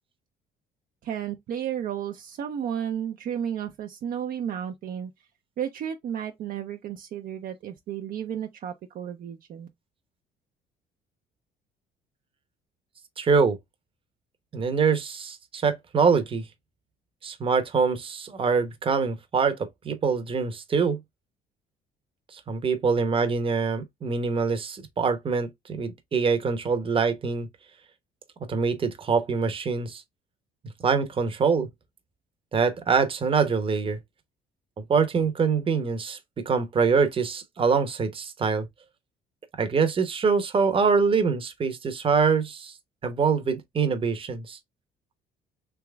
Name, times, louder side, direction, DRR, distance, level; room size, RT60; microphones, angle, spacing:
voice 1, 1.0-5.1 5.6-9.7, right 9 dB, 55° right, 0.7 m, -33 dB
voice 2, 13.2-13.6 14.5-16.4 17.2-21.0 22.3-27.5 28.5-30.0 30.8-31.7 32.5-34.0 34.8-38.6 39.6-42.7 43.0-44.6, right 5 dB, 30° right, 0.9 m, -24 dB
3.5 x 3.0 x 3.3 m
cardioid pair, 110°, 17 cm